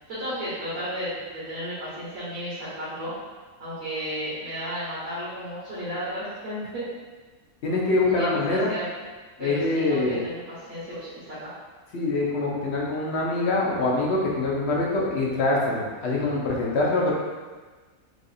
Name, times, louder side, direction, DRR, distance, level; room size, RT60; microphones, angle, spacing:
voice 1, 0.1-3.1 3.6-6.8 8.0-8.9 9.4-11.6, equal, 50° right, -11 dB, 1.4 m, -34 dB
voice 2, 7.6-8.7 9.4-10.2 11.9-17.1, left 2 dB, 60° left, -4 dB, 1.0 m, -24 dB
4.8 x 2.5 x 2.7 m, 1.4 s
omnidirectional pair, 1.4 m